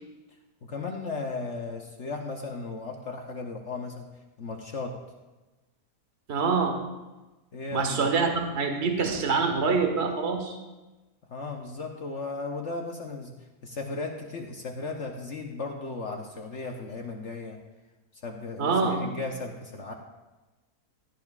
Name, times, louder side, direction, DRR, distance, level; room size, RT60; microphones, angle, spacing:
voice 1, 0.6-4.1 4.4-5.0 7.5-8.1 11.3-17.6 18.2-19.9, left 3 dB, 50° left, 2 dB, 1.2 m, -36 dB
voice 2, 6.3-6.8 7.7-10.6 18.6-19.0, right 4 dB, 45° right, 4 dB, 1.4 m, -25 dB
16.5 x 11.5 x 2.4 m, 1.1 s
omnidirectional pair, 1.7 m